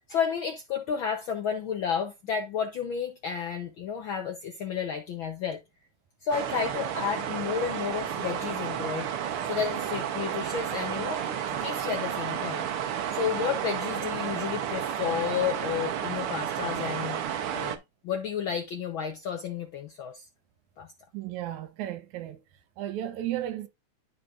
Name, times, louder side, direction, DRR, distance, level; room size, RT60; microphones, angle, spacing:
voice 1, 0.1-5.6 6.2-9.1 9.5-11.2 11.6-12.7 13.1-17.2 17.5-17.8 18.0-20.3 20.8-20.9, left 7 dB, 75° left, 1.1 m, -31 dB
sound 1, 6.3-17.8, right 9 dB, 65° right, 1.5 m, -32 dB
voice 2, 21.1-22.4 22.8-23.7, right 12 dB, 85° right, 2.3 m, -34 dB
12.5 x 5.2 x 2.4 m
omnidirectional pair, 3.3 m